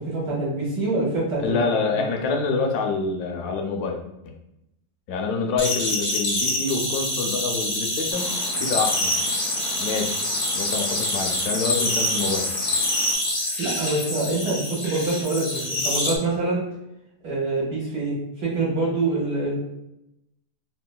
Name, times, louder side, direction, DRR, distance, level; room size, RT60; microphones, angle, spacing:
voice 1, 0.1-1.6 1.9-2.0 13.6-16.6 17.2-19.6, right 2 dB, 75° right, -5 dB, 1.6 m, -25 dB
voice 2, 1.4-4.0 4.2-4.3 5.1-8.3 8.6-9.2 9.8-10.2 10.5-12.5, left 4 dB, 80° left, 2 dB, 1.1 m, -26 dB
sound 1, 5.6-16.1, left 1 dB, 50° left, 0.7 m, -26 dB
sound 2, 8.1-13.1, equal, 40° right, 0.6 m, -39 dB
3.6 x 2.2 x 2.2 m, 0.85 s
omnidirectional pair, 1.7 m